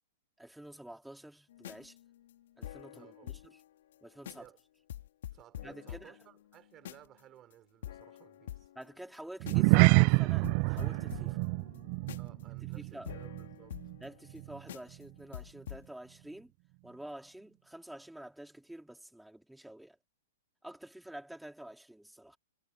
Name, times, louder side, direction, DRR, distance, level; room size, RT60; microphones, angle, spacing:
voice 1, 0.4-2.0 2.6-3.6 4.0-4.5 5.6-6.1 8.7-11.4 12.6-13.1 14.0-16.5 16.8-20.0 20.6-22.4, right 1 dB, ahead, 3.0 m, -48 dB
sound 1, 1.5-3.6 3.9-4.0 4.2-4.6 4.9-7.2 7.5-7.6 7.8-9.8 10.1-10.2 10.4-14.4 14.7-15.0 15.3-15.9, left 12 dB, 65° left, 2.7 m, -47 dB
voice 2, 2.9-3.3 4.3-4.6 5.3-8.7 12.2-13.8, right 12 dB, 25° right, 6.1 m, -58 dB
sound 2, 9.4-14.0 14.3-14.6 15.1-15.2, right 29 dB, 40° right, 0.4 m, -27 dB
hypercardioid pair, 145°, 0 cm